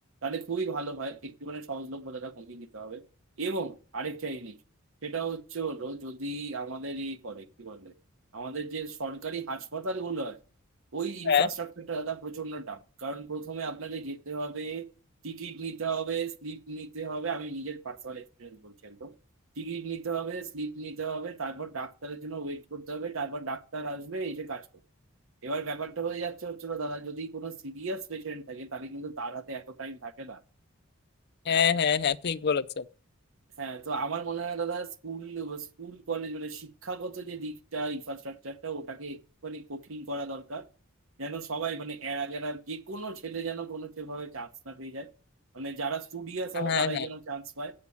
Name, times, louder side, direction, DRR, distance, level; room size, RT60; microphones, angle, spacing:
voice 1, 0.2-3.0 3.4-4.6 5.0-7.9 8.3-10.4 10.9-14.9 15.2-19.1 19.6-24.7 25.4-30.4 33.6-40.7 41.2-45.1 45.5-47.7, right 4 dB, 65° right, 1.0 m, -35 dB
voice 2, 31.5-32.8 46.6-47.1, left 7 dB, 50° left, 0.5 m, -25 dB
8.3 x 6.9 x 8.5 m
head